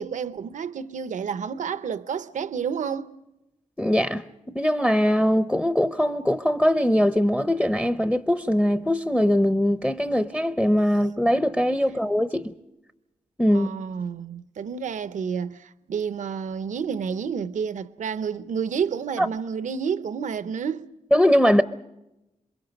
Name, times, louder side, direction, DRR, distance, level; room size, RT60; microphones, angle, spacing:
voice 1, 0.0-3.1 13.5-20.9, right 6 dB, 75° right, 0.7 m, -30 dB
voice 2, 3.8-12.5 13.4-13.7 19.2-19.3 21.1-21.6, equal, 5° left, 0.7 m, -21 dB
27.5 x 23.5 x 5.2 m
wide cardioid pair, 125°, 13 cm